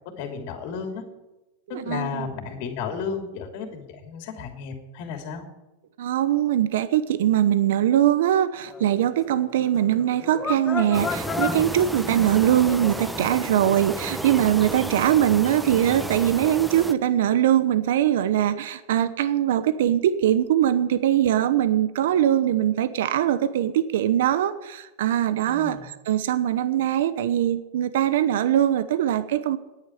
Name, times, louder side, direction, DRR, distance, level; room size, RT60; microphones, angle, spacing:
voice 1, 0.2-1.0 1.7-5.5 25.5-25.9, left 6 dB, 60° left, 4 dB, 2.9 m, -33 dB
voice 2, 1.7-2.3 6.0-29.6, right 11 dB, 75° right, 13 dB, 0.9 m, -22 dB
sound 1, 8.7-13.1 13.6-13.7, left 5 dB, 20° left, 1.4 m, -33 dB
sound 2, 10.9-16.9, right 1 dB, 5° right, 0.8 m, -32 dB
10.5 x 9.1 x 9.7 m, 1.0 s
hypercardioid pair, 120°, 0 cm